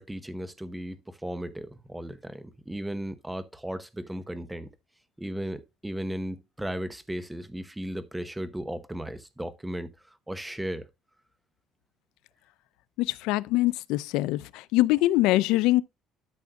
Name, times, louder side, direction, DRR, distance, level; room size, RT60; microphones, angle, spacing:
voice 1, 0.0-4.7 5.2-9.9 10.3-10.9, right 1 dB, 5° right, 1.0 m, -35 dB
voice 2, 13.0-15.8, left 17 dB, 85° left, 0.5 m, -23 dB
13.0 x 6.3 x 2.3 m
cardioid pair, 150°, 0 cm